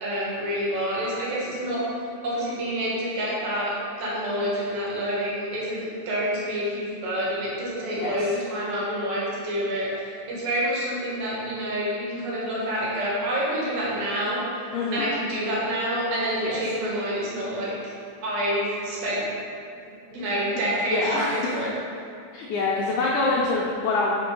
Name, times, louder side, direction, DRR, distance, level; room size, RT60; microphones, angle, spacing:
voice 1, 0.0-1.8 2.2-14.4 14.9-17.8 18.2-19.3 19.8-21.7, equal, 65° right, -6 dB, 3.0 m, -28 dB
voice 2, 14.7-15.1 16.4-16.6 20.9-21.3 22.3-24.1, left 3 dB, 90° left, -6 dB, 1.7 m, -25 dB
5.9 x 4.7 x 5.3 m, 2.4 s
omnidirectional pair, 4.4 m